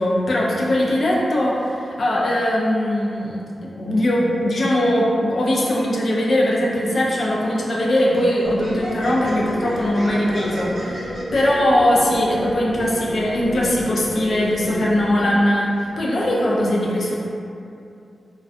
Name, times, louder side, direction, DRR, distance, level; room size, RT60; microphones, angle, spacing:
voice 1, 0.0-17.2, left 1 dB, 50° left, -3 dB, 0.4 m, -20 dB
Laughter, 6.9-7.1 7.8-11.4, equal, 50° right, 0.7 m, -35 dB
sound 1, 8.4-15.4, equal, 30° right, 1.1 m, -32 dB
2.4 x 2.2 x 2.4 m, 2.5 s
wide cardioid pair, 170°, 0 cm